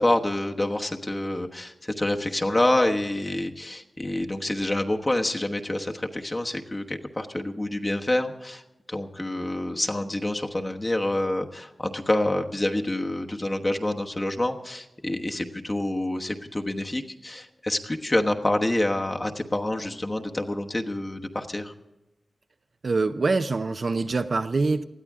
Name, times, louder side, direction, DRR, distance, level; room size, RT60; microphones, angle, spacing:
voice 1, 0.0-8.6 8.9-21.7, left 1 dB, 25° left, 1.2 m, -27 dB
voice 2, 22.8-24.8, right 3 dB, 55° right, 0.6 m, -24 dB
19.5 x 13.5 x 3.6 m
wide cardioid pair, 100°, 0 cm